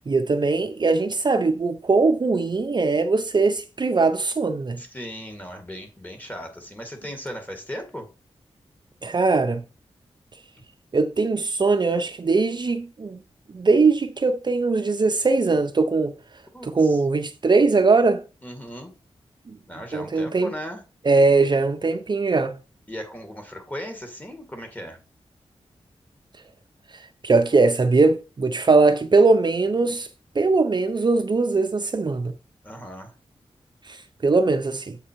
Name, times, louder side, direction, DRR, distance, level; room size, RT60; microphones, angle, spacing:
voice 1, 0.1-4.8 9.0-9.6 10.9-13.2 13.5-16.1 16.6-18.2 19.5-19.6 19.9-20.5 21.0-22.6 26.9-30.1 30.4-32.3 33.8-35.0, right 3 dB, 40° right, 0.6 m, -20 dB
voice 2, 4.8-8.1 16.5-17.0 18.4-18.9 19.7-20.8 22.9-25.0 32.6-33.1, equal, 15° left, 1.9 m, -37 dB
7.4 x 3.8 x 4.5 m
cardioid pair, 65°, 11 cm